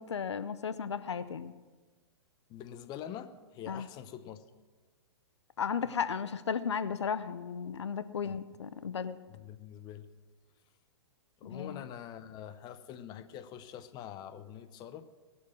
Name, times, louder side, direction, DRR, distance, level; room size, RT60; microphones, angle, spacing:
voice 1, 0.0-1.5 3.7-3.9 5.6-9.2 11.4-11.8, left 6 dB, 85° left, 13 dB, 0.7 m, -35 dB
voice 2, 2.5-4.5 8.2-8.4 9.3-10.1 11.4-15.1, left 10 dB, 30° left, 11 dB, 0.9 m, -45 dB
21.0 x 7.3 x 6.3 m, 1.3 s
hypercardioid pair, 125°, 14 cm